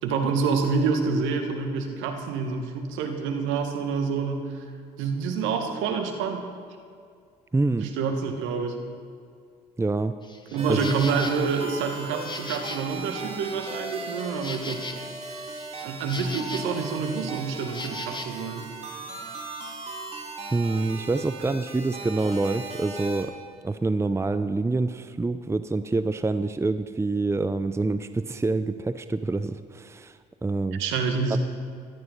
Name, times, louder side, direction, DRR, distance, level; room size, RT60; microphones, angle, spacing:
voice 1, 0.0-4.6 5.0-6.5 7.8-8.8 10.5-14.9 15.3-15.4 15.8-18.7 30.8-31.4, right 5 dB, 65° right, 5 dB, 2.0 m, -27 dB
voice 2, 7.5-7.9 9.8-10.1 10.7-10.9 20.5-23.3 23.6-30.8 31.3-31.4, right 3 dB, 15° right, 12 dB, 0.7 m, -26 dB
Insect, 10.2-18.3, left 3 dB, 20° left, 1.8 m, -40 dB
sound 1, 10.6-23.2, right 3 dB, 30° right, 3.7 m, -38 dB
17.0 x 12.5 x 5.5 m, 2.2 s
hypercardioid pair, 50°, 21 cm